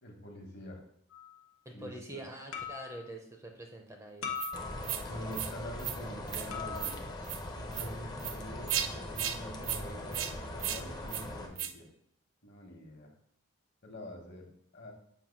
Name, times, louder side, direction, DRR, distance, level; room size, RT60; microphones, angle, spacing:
voice 1, 0.0-0.8 1.7-2.2 5.0-7.0 7.6-11.9 12.4-13.1 13.8-14.5 14.7-14.9, equal, 50° left, 1 dB, 1.3 m, -46 dB
sound 1, 1.1-1.4 2.5-3.1 4.2-5.1 6.5-7.1, left 6 dB, 80° left, 0.8 m, -40 dB
voice 2, 1.6-4.4, right 1 dB, 15° right, 2 dB, 0.6 m, -45 dB
sound 2, 4.4-4.5 4.8-5.0 5.3-5.5 5.8-6.0 6.3-6.5 6.8-7.0 7.2-7.4 7.7-7.9 8.2-8.3 8.7-8.9 9.2-9.4 9.6-9.8 10.1-10.3 10.6-10.8 11.1-11.2 11.6-11.7, right 10 dB, 70° right, 0.4 m, -35 dB
sound 3, 4.5-11.5, left 1 dB, 20° left, 0.7 m, -41 dB
7.3 x 2.6 x 5.3 m, 0.66 s
head